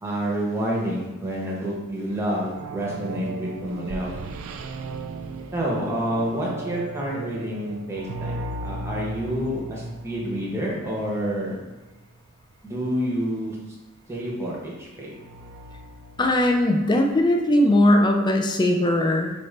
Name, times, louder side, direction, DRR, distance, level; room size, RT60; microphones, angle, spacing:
voice 1, 0.0-4.1 5.5-8.3 8.6-11.6 12.6-13.6 14.1-15.1, equal, 10° right, -4 dB, 0.8 m, -28 dB
sound 1, 2.1-12.1 15.1-17.0, right 2 dB, 65° right, 0.3 m, -36 dB
voice 2, 16.2-19.3, left 1 dB, 20° left, 2 dB, 0.3 m, -19 dB
4.2 x 2.5 x 3.2 m, 1.2 s
head